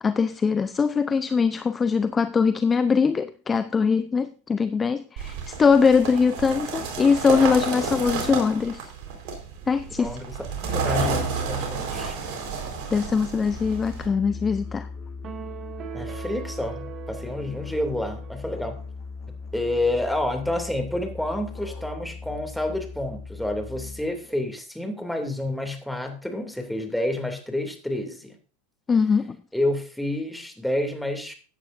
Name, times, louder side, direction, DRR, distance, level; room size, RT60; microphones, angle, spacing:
voice 1, 0.0-8.9 9.7-10.2 12.9-14.9 28.9-29.4, left 5 dB, 20° left, 0.6 m, -22 dB
sound 1, 5.2-14.1, right 5 dB, 60° right, 4.4 m, -31 dB
voice 2, 10.0-10.5 10.7-12.2 15.9-18.8 19.5-28.4 29.5-31.3, left 1 dB, ahead, 2.7 m, -29 dB
Musical instrument, 13.5-24.3, left 4 dB, 35° left, 4.9 m, -38 dB
sound 2, 15.2-18.7, right 10 dB, 35° right, 2.2 m, -40 dB
15.0 x 9.7 x 2.6 m
hypercardioid pair, 105°, 0 cm